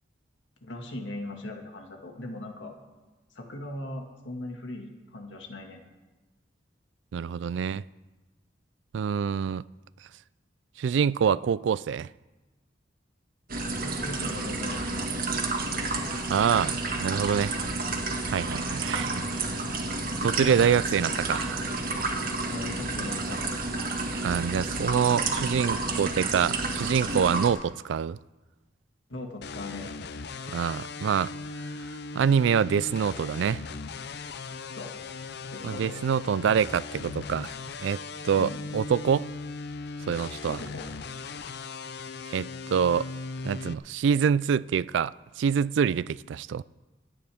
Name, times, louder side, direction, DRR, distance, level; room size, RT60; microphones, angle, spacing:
voice 1, 0.6-2.7 3.3-5.8 13.8-15.3 20.4-20.8 22.5-23.7 29.1-30.0 34.8-34.9 35.5-35.9 38.4-38.6 40.5-40.9, left 1 dB, 90° left, 2.0 m, -39 dB
voice 2, 7.1-7.8 8.9-9.6 10.8-12.1 16.3-17.5 18.3-19.2 20.2-21.6 24.2-28.2 30.5-31.3 32.1-33.6 35.6-38.0 38.2-39.3 40.1-40.6 42.3-43.1 43.4-46.6, right 7 dB, 75° right, 0.3 m, -26 dB
sound 1, 13.5-27.5, right 3 dB, 55° right, 1.7 m, -30 dB
sound 2, 29.4-43.7, left 4 dB, 60° left, 0.6 m, -38 dB
26.5 x 9.2 x 3.6 m
head